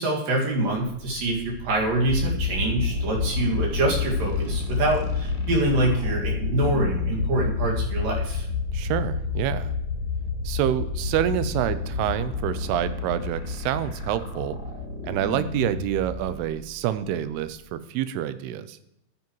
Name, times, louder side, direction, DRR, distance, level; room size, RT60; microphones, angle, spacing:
voice 1, 0.0-8.5, right 2 dB, 65° right, -1 dB, 3.5 m, -25 dB
sound 1, 1.4-17.7, equal, 60° left, 2.9 m, -38 dB
sound 2, 2.1-15.2, left 5 dB, 35° right, 1.8 m, -29 dB
voice 2, 8.7-9.8 10.4-14.6 15.0-18.8, right 11 dB, 85° right, 13 dB, 2.6 m, -27 dB
13.0 x 9.3 x 3.1 m, 0.81 s
omnidirectional pair, 4.6 m